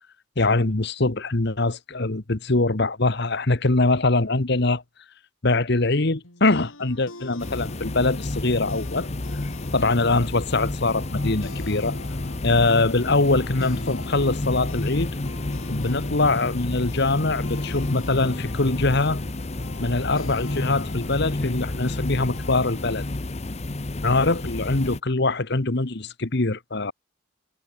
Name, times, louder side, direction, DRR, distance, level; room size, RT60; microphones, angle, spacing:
voice 1, 0.4-4.8 5.4-9.1 9.7-12.0 12.4-15.1 15.7-19.2 19.8-23.0 24.0-26.9, left 2 dB, 55° left, 1.3 m, -23 dB
sound 1, 6.2-23.2, left 2 dB, 85° left, 5.6 m, -43 dB
sound 2, 7.4-25.0, left 2 dB, 30° left, 0.8 m, -30 dB
head